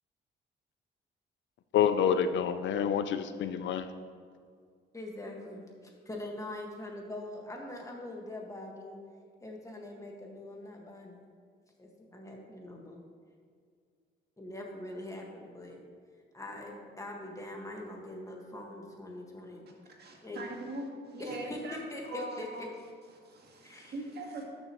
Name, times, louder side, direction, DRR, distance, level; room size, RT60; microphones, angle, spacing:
voice 1, 1.7-3.9, left 8 dB, 70° left, 11 dB, 0.5 m, -27 dB
voice 2, 4.9-5.7 6.1-9.0 9.4-11.2 11.8-13.0 14.4-15.8 16.3-19.7 20.2-20.4 21.2-22.7 23.6-23.9, left 1 dB, 15° left, 0 dB, 1.7 m, -42 dB
voice 3, 20.0-21.8 22.1-22.7 23.2-24.4, right 1 dB, 55° right, 0 dB, 1.8 m, -41 dB
12.5 x 6.7 x 3.1 m, 2.1 s
cardioid pair, 90°, 20 cm